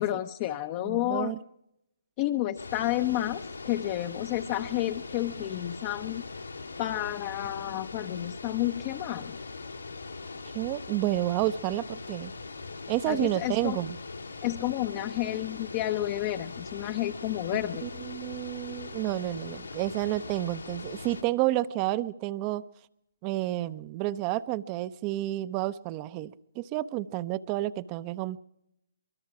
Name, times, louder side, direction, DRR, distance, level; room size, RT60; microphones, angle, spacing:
voice 1, 0.0-1.3 2.2-6.2 6.8-9.4 13.1-13.8 14.4-17.8, left 14 dB, 30° left, 7 dB, 0.9 m, -30 dB
voice 2, 0.8-1.4 10.5-12.3 12.9-14.0 17.8-22.6 23.2-28.4, right 15 dB, 25° right, 16 dB, 0.8 m, -30 dB
sound 1, 2.6-21.2, left 3 dB, 85° left, 3.1 m, -41 dB
23.5 x 23.5 x 4.9 m, 0.82 s
figure-of-eight pair, 140°, 0 cm